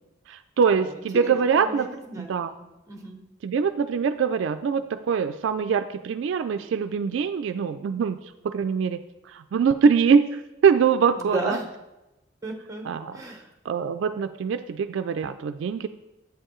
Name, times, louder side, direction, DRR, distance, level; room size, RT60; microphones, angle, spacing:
voice 1, 0.3-1.9 2.2-2.5 3.4-8.2 8.4-11.6 12.8-13.2 13.7-15.9, right 6 dB, 70° right, 10 dB, 0.3 m, -23 dB
voice 2, 1.2-2.3 2.6-3.2 11.1-11.7 12.4-12.9 13.1-13.5, right 2 dB, 15° right, 3 dB, 0.8 m, -34 dB
8.1 x 6.5 x 3.1 m, 0.98 s
head